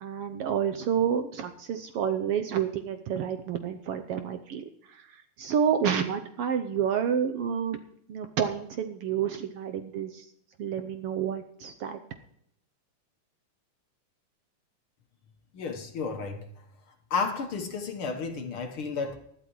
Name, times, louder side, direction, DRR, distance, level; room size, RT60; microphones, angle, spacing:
voice 1, 0.0-7.8 8.1-10.3 10.6-12.0, right 8 dB, 85° right, 8 dB, 1.3 m, -29 dB
voice 2, 15.5-16.5 17.1-19.2, left 5 dB, 60° left, 5 dB, 1.6 m, -32 dB
19.5 x 12.5 x 3.1 m, 0.73 s
omnidirectional pair, 3.5 m